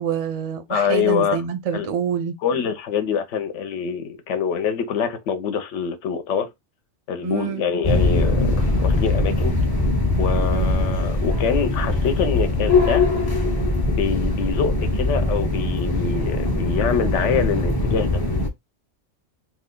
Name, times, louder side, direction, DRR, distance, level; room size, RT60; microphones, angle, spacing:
voice 1, 0.0-2.3 7.2-7.6 10.5-10.7, right 8 dB, 50° right, 0.4 m, -26 dB
voice 2, 0.7-1.4 1.7-1.9 2.4-6.5 7.1-9.6 10.2-13.1 13.9-18.2, left 7 dB, 85° left, 1.0 m, -25 dB
sound 1, 7.8-18.5, left 2 dB, 30° left, 0.5 m, -21 dB
2.7 x 2.3 x 3.6 m
omnidirectional pair, 1.2 m